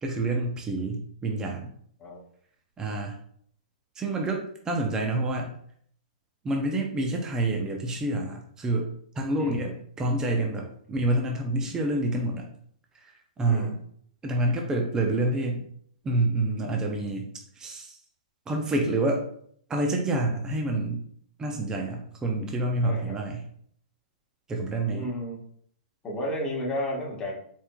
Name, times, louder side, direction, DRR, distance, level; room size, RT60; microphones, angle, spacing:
voice 1, 0.0-1.7 2.8-3.2 4.0-4.4 4.6-5.5 6.4-8.9 9.2-12.5 13.0-13.1 13.4-13.8 14.2-15.7 16.0-17.3 17.6-18.0 18.5-19.2 19.7-21.0 21.4-23.4 24.5-25.0, right 2 dB, 15° right, 1 dB, 0.6 m, -27 dB
voice 2, 9.4-9.7 13.5-13.8 22.8-23.2 24.9-25.4 26.0-27.4, equal, 20° left, -3 dB, 1.2 m, -32 dB
4.4 x 3.5 x 2.2 m, 0.63 s
hypercardioid pair, 135°, 4 cm